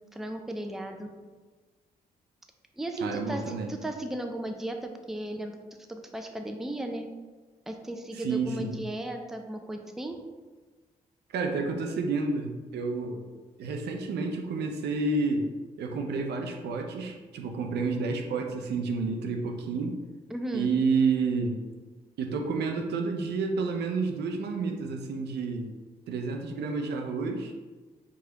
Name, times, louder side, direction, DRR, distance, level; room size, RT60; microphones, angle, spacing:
voice 1, 0.1-1.1 2.8-5.5 5.9-7.1 7.7-10.2 20.3-20.7, right 1 dB, ahead, 4 dB, 0.5 m, -35 dB
voice 2, 3.0-3.7 8.1-8.9 11.3-13.2 13.6-15.5 15.8-20.0 20.5-21.6 22.2-25.7 26.1-27.5, right 4 dB, 65° right, 3 dB, 0.5 m, -30 dB
4.6 x 2.4 x 2.9 m, 1.3 s
hypercardioid pair, 40°, 19 cm